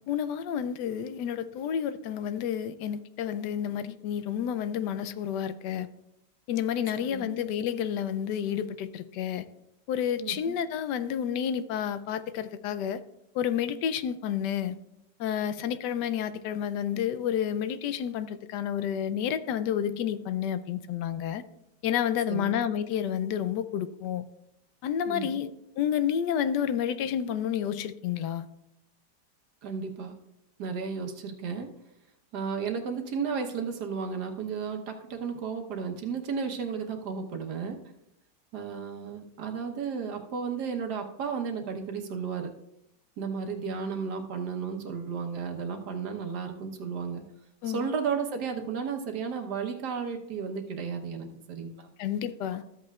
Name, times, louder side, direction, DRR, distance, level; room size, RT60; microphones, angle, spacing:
voice 1, 0.0-5.9 6.5-9.5 9.9-13.0 13.3-14.8 15.2-21.4 21.8-24.2 24.8-25.5 25.8-28.5 47.6-47.9 52.0-52.6, left 9 dB, 80° left, 1.2 m, -30 dB
voice 2, 7.1-7.4 10.2-10.6 22.3-22.6 25.0-25.4 29.6-30.1 30.6-31.7 32.3-37.8 38.5-42.5 43.2-47.2 47.6-51.9, right 6 dB, 70° right, 1.6 m, -33 dB
13.5 x 7.9 x 2.3 m
omnidirectional pair, 1.8 m